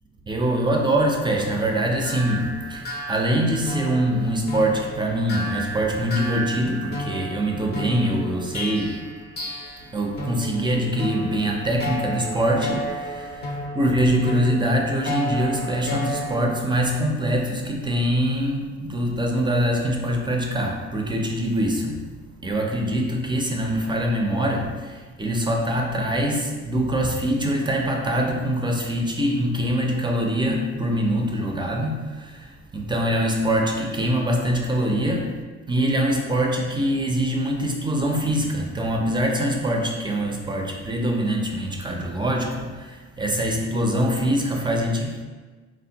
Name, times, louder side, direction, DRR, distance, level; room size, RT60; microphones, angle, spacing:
voice 1, 0.3-9.1 9.8-22.0 22.4-35.3 35.7-45.2, equal, 15° right, 0 dB, 0.5 m, -24 dB
sound 1, 1.2-9.9 10.2-16.6, equal, 35° left, 0.6 m, -33 dB
3.3 x 2.2 x 2.8 m, 1.4 s
cardioid pair, 90°, 30 cm